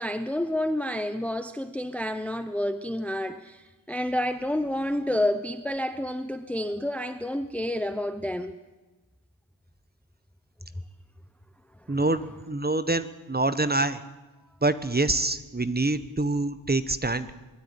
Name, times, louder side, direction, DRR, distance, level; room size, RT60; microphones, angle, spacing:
voice 1, 0.0-8.6 11.9-12.1, left 1 dB, 5° left, 0.8 m, -29 dB
voice 2, 11.9-14.0 14.6-17.3, right 2 dB, 20° right, 1.2 m, -26 dB
21.0 x 13.0 x 10.0 m
wide cardioid pair, 75°, 48 cm